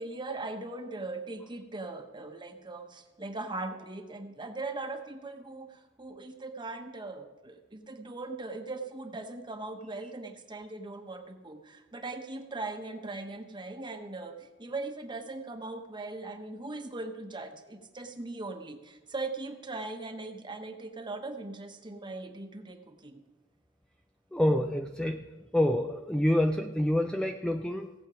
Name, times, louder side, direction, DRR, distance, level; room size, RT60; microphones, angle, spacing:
voice 1, 0.0-23.2, right 2 dB, 25° right, 5 dB, 1.0 m, -40 dB
voice 2, 24.3-25.2 25.5-27.9, left 1 dB, 5° left, 5 dB, 0.4 m, -27 dB
17.0 x 8.1 x 5.0 m, 1.2 s
head